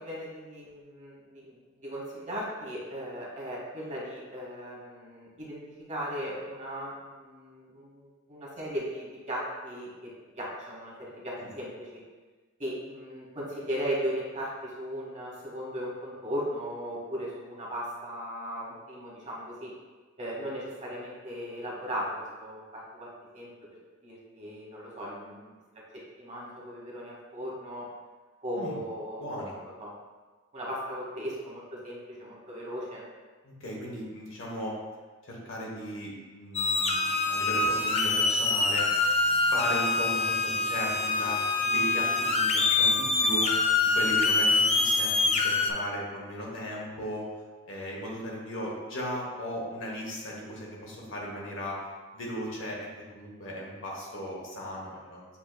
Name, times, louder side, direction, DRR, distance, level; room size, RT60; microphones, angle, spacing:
voice 1, 0.0-10.1 10.3-12.0 12.6-19.7 20.2-23.1 23.3-23.5 24.0-25.8 26.2-27.9 28.4-29.9 30.5-33.0, equal, 35° right, -5 dB, 1.1 m, -37 dB
voice 2, 29.2-29.5 33.4-34.7 35.2-38.9 39.4-43.5 43.9-47.3 47.6-51.8 52.1-52.9 53.1-55.3, equal, 70° left, -3 dB, 1.1 m, -36 dB
sound 1, 36.5-45.7, left 3 dB, 30° left, 0.4 m, -25 dB
7.1 x 2.8 x 2.2 m, 1.3 s
head